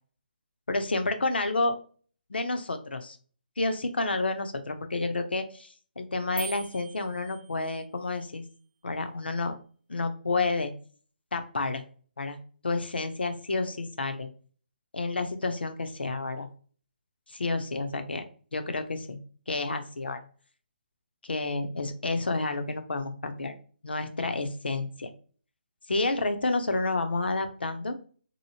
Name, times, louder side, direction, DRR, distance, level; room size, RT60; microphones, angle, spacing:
voice 1, 0.7-1.8 2.3-3.2 3.6-8.4 8.8-9.6 9.9-10.7 11.3-11.8 12.2-14.3 14.9-16.5 17.3-18.2 18.5-19.2 19.5-20.3 21.2-23.5 23.8-25.1 25.9-28.0, left 3 dB, 80° left, 7 dB, 0.6 m, -30 dB
sound 1, 6.4-7.9, right 4 dB, 85° right, 0.4 m, -42 dB
2.8 x 2.7 x 2.7 m, 0.41 s
figure-of-eight pair, 145°, 6 cm